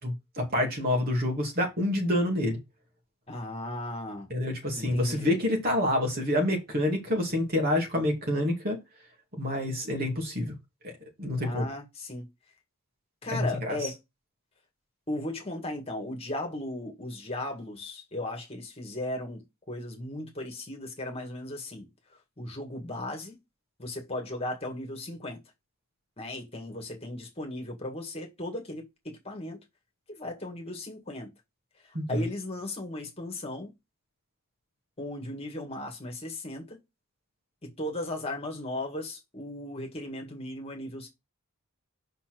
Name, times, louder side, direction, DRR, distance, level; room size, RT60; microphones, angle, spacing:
voice 1, 0.0-2.6 4.3-8.8 9.3-10.5 10.8-10.9 11.2-11.7 13.3-13.8 31.9-32.2, left 1 dB, 40° right, 2.5 m, -27 dB
voice 2, 3.3-4.3 4.7-5.3 11.4-12.3 13.2-14.0 15.1-23.4 23.8-25.4 26.2-29.6 30.1-31.3 31.8-33.7 35.0-36.8 37.6-41.1, left 1 dB, 25° left, 1.8 m, -36 dB
5.7 x 4.4 x 6.1 m
head